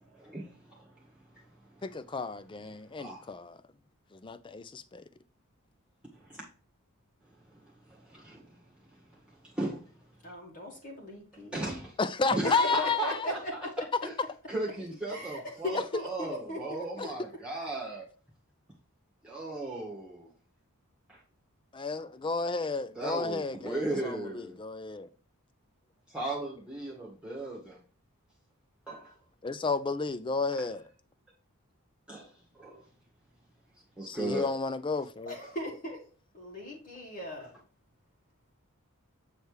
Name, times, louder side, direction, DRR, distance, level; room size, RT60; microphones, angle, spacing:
voice 1, 0.1-1.4 1.7-1.9 2.9-3.3 6.1-6.4 7.5-7.6 7.9-8.6 8.9-9.9 11.5-12.0 12.3-13.4 14.0-14.1 14.5-18.0 19.2-20.3 21.1-21.2 22.9-24.6 26.1-27.8 28.9-29.2 30.5-30.7 32.1-32.2 32.6-32.8 34.0-34.5, right 2 dB, 5° right, 1.5 m, -37 dB
voice 2, 1.8-3.6 4.1-5.0 12.0-13.3 21.7-25.1 29.4-30.8 34.1-35.3, left 4 dB, 20° left, 0.4 m, -32 dB
voice 3, 10.2-11.6 12.4-13.9 15.1-17.1 35.2-36.0 36.3-37.5, left 1 dB, 40° left, 1.7 m, -38 dB
8.0 x 3.3 x 4.7 m
head